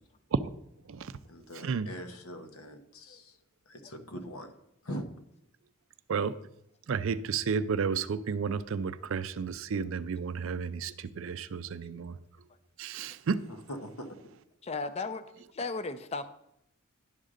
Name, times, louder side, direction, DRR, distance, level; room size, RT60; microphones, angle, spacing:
voice 1, 1.3-3.4 3.7-4.5 4.8-5.1 13.5-14.1, equal, 80° left, 1.1 m, -42 dB
voice 2, 6.9-12.2 12.8-13.4, right 5 dB, 65° right, 0.4 m, -32 dB
voice 3, 14.6-16.3, left 3 dB, 30° left, 0.5 m, -36 dB
11.0 x 3.7 x 6.5 m
head